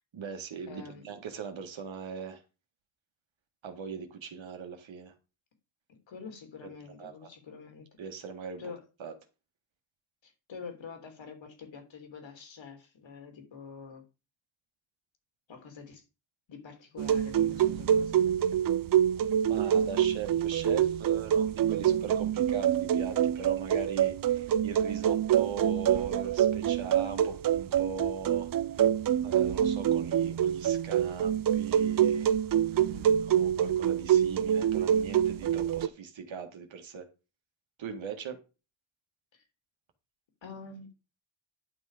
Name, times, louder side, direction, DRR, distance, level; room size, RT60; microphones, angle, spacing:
voice 1, 0.1-2.4 3.6-5.1 7.0-7.3 8.0-8.6 9.0-9.1 19.4-28.5 29.2-32.3 33.2-37.1 37.8-38.4, right 6 dB, 70° right, 1.8 m, -40 dB
voice 2, 0.7-1.0 5.9-7.9 8.6-8.8 10.2-14.0 15.5-16.0 16.5-18.2 32.8-33.2 39.3-39.4 40.4-40.9, left 5 dB, 65° left, 3.2 m, -46 dB
sound 1, 17.0-35.9, right 10 dB, 45° right, 0.4 m, -26 dB
11.0 x 5.8 x 5.0 m
wide cardioid pair, 120°, 49 cm